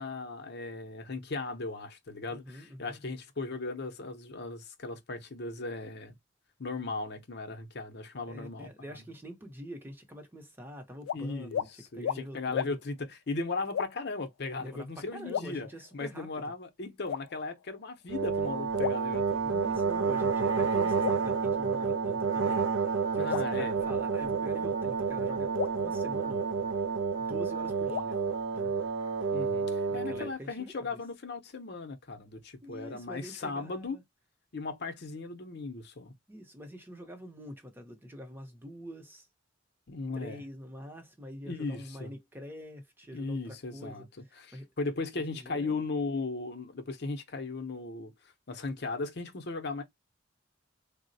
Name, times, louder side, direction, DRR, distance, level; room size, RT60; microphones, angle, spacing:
voice 1, 0.0-6.1 6.6-9.0 11.1-15.7 15.9-19.8 23.2-23.8 29.3-34.0 34.5-36.1 39.9-40.4 41.4-42.1 43.1-44.1 44.4-49.8, left 3 dB, 55° left, 0.6 m, -37 dB
voice 2, 2.3-3.0 8.3-12.8 14.6-16.5 19.4-26.7 27.2-28.2 28.5-28.7 29.9-31.0 32.6-34.0 36.3-39.3 40.1-44.7 45.1-45.8, equal, 10° right, 0.7 m, -46 dB
sound 1, 11.0-11.2 11.5-11.7 12.0-12.2 12.5-12.7 13.7-14.2 15.3-16.1 17.1-17.8 18.8-19.8 21.0-22.2 23.3-24.5 25.6-27.0 27.9-29.1, left 8 dB, 85° left, 0.3 m, -37 dB
sound 2, 18.1-30.3, right 5 dB, 65° right, 0.3 m, -30 dB
3.6 x 2.0 x 2.6 m
head